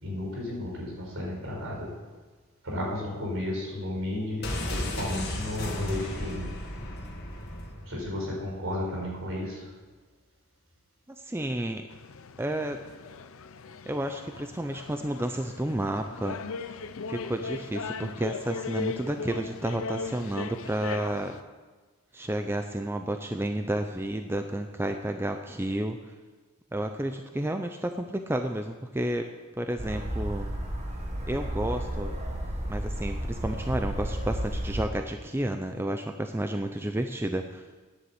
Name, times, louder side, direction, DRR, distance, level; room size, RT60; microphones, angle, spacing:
voice 1, 0.0-1.9 2.6-6.5 7.8-9.7, left 1 dB, 65° right, -2 dB, 4.4 m, -33 dB
sound 1, 4.4-8.2 8.5-8.6, left 1 dB, 50° left, 2.0 m, -34 dB
voice 2, 11.2-11.9 12.4-12.8 13.9-16.4 17.1-21.3 22.1-26.0 26.7-29.2 29.6-30.5 31.3-32.1 32.7-37.6, right 1 dB, 10° right, 6 dB, 0.4 m, -31 dB
sound 2, 11.9-21.4, left 4 dB, 65° left, 0.6 m, -38 dB
sound 3, 29.8-34.8, right 1 dB, 30° right, 1.5 m, -32 dB
10.0 x 8.2 x 7.9 m, 1.4 s
head